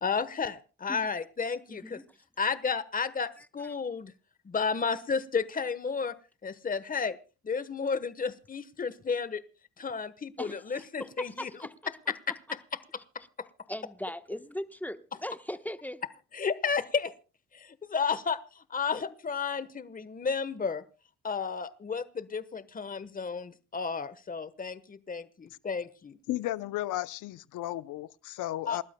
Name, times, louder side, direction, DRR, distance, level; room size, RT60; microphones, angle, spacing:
voice 1, 0.0-2.0 2.4-4.1 4.4-6.1 6.4-7.2 7.4-9.4 9.8-11.5 12.1-12.2 16.3-17.1 17.5-20.8 21.2-26.2 28.7-28.8, left 5 dB, 30° left, 1.1 m, -32 dB
voice 2, 1.7-2.0 10.4-11.7 13.7-16.0, left 1 dB, 5° left, 1.0 m, -39 dB
voice 3, 26.3-28.8, left 15 dB, 85° left, 0.7 m, -34 dB
28.5 x 12.5 x 2.2 m
cardioid pair, 90°, 30 cm